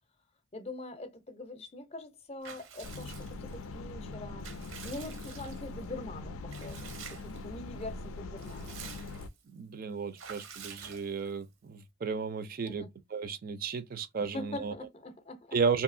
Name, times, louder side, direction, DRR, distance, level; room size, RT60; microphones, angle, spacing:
voice 1, 0.5-4.5 4.8-8.8 12.6-12.9 14.2-15.6, left 2 dB, 30° left, 0.5 m, -43 dB
Water / Bathtub (filling or washing) / Liquid, 2.4-3.7 4.1-5.9 6.5-7.5 7.8-7.9 8.2-9.4 10.2-11.4, right 7 dB, 80° right, 0.7 m, -48 dB
sound 1, 2.8-9.3, left 3 dB, 80° left, 0.4 m, -42 dB
voice 2, 9.5-12.9 13.1-14.7 15.5-15.8, right 5 dB, 45° right, 0.4 m, -33 dB
2.7 x 2.6 x 2.5 m
head